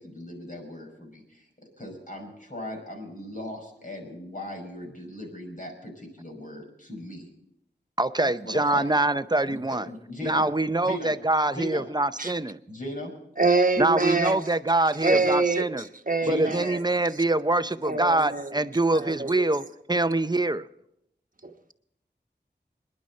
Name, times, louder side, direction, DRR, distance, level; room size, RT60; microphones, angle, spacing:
voice 1, 0.0-1.5 1.8-7.3 8.2-8.9 9.5-10.5 10.8-11.1 11.5-11.8 12.7-13.1 15.1-15.2 16.2-16.6, left 1 dB, 50° left, 5.6 m, -38 dB
voice 2, 8.0-9.9 10.2-12.6 13.8-15.9 16.3-20.7, right 2 dB, 25° right, 0.6 m, -24 dB
voice 3, 13.4-14.4 15.0-15.7 16.1-16.8 17.8-18.6 18.9-19.5 21.4-21.7, right 3 dB, 50° right, 1.2 m, -25 dB
26.0 x 10.5 x 4.3 m
wide cardioid pair, 50°, 18 cm